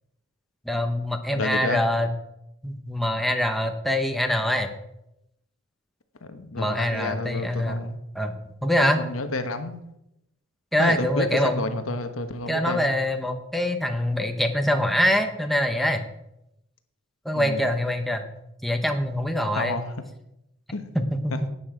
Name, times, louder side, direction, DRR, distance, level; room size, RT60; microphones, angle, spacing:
voice 1, 0.6-2.1 2.6-4.7 6.6-7.8 8.1-8.4 8.6-9.0 10.7-11.8 12.5-16.1 17.2-18.3 18.6-19.8 20.9-21.5, equal, ahead, 5 dB, 0.9 m, -24 dB
voice 2, 1.3-1.8 6.2-8.0 8.9-9.8 10.8-12.9 17.3-17.7 19.5-19.9 20.7-20.9 21.3-21.4, left 2 dB, 75° left, 8 dB, 1.2 m, -30 dB
12.0 x 9.0 x 5.0 m, 0.84 s
head